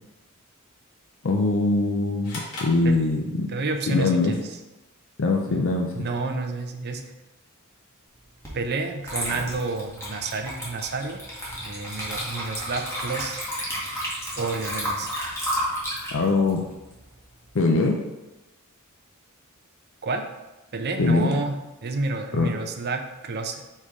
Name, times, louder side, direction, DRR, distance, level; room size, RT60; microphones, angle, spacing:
voice 1, 1.2-3.5 3.9-4.3 5.2-5.9 16.1-16.6 17.5-18.0 21.0-21.3 22.3-22.5, left 3 dB, 65° left, 2 dB, 0.6 m, -22 dB
sound 1, 2.2-3.7, left 2 dB, 85° left, 2.1 m, -39 dB
voice 2, 3.5-4.6 5.5-5.6 5.9-7.0 8.5-11.2 11.6-13.4 14.4-15.1 20.0-20.2 20.7-23.6, right 3 dB, 50° right, 4 dB, 0.7 m, -30 dB
Water / Liquid, 8.4-8.6 9.0-17.6, equal, 15° left, 1.8 m, -32 dB
5.1 x 4.3 x 4.8 m, 1.1 s
head